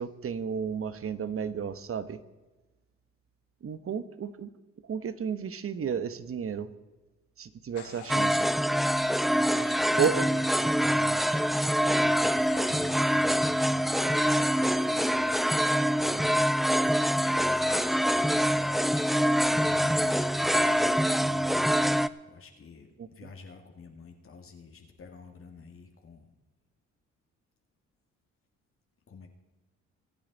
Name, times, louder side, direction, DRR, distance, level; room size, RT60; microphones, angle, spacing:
voice 1, 0.0-2.2 3.6-4.5 4.9-6.7 7.4-8.5 10.0-10.3 23.0-23.3, right 7 dB, 45° right, 13 dB, 1.1 m, -32 dB
Human voice / Train, 7.8-8.6 12.5-13.0 14.2-14.6 17.7-20.8, left 8 dB, 80° left, 2.7 m, -45 dB
sound 1, 8.1-22.1, equal, ahead, 0.4 m, -25 dB
voice 2, 9.4-11.5 12.0-15.4 15.8-16.5 16.8-26.3 29.1-29.3, left 4 dB, 45° left, 3 dB, 2.1 m, -47 dB
25.0 x 8.9 x 4.1 m, 1.2 s
cardioid pair, 90°, 30 cm